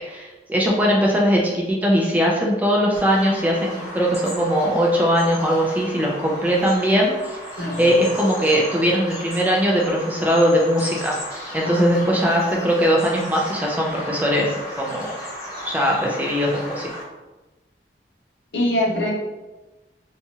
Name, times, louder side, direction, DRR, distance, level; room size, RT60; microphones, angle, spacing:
voice 1, 0.0-7.4 7.8-11.2 11.5-15.1 15.7-16.9, equal, 10° right, -2 dB, 0.3 m, -20 dB
Bird vocalization bird call bird song, 2.9-17.0, equal, 20° left, 0.9 m, -35 dB
voice 2, 11.6-12.2 18.5-19.1, left 1 dB, 75° left, -2 dB, 0.7 m, -23 dB
2.8 x 2.3 x 2.8 m, 1.1 s
head